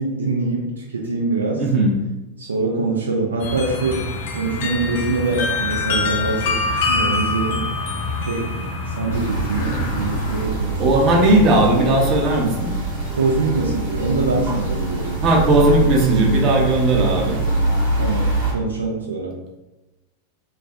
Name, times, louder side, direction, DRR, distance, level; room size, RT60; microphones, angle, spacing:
voice 1, 0.0-1.6 2.4-4.1 4.4-7.6 8.3-8.6 8.9-10.8 11.1-11.3 13.2-15.2 18.0-19.4, right 3 dB, 70° right, -2 dB, 0.4 m, -24 dB
voice 2, 1.6-2.0 10.8-12.7 15.2-17.4, right 1 dB, 35° right, 0 dB, 0.6 m, -17 dB
sound 1, 3.4-10.4, left 3 dB, 55° left, 0.5 m, -25 dB
sound 2, 9.1-18.5, right 2 dB, 50° right, 1.0 m, -24 dB
3.1 x 2.0 x 2.6 m, 1.0 s
figure-of-eight pair, 90°, 0 cm